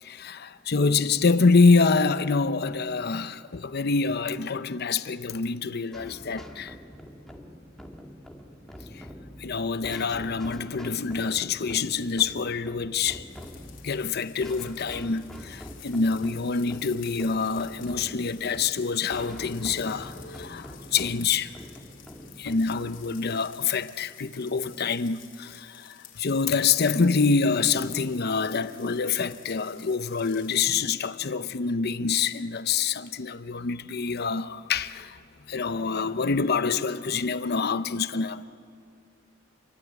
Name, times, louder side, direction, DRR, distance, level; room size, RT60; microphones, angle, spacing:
voice 1, 0.0-6.8 8.9-9.1 9.4-13.2 13.8-21.6 22.4-35.2 35.5-38.4, left 4 dB, 55° left, 0.7 m, -26 dB
sound 1, 5.9-22.6, equal, ahead, 1.9 m, -45 dB
sound 2, 13.3-30.6, left 10 dB, 70° left, 3.0 m, -52 dB
29.0 x 23.0 x 8.3 m
head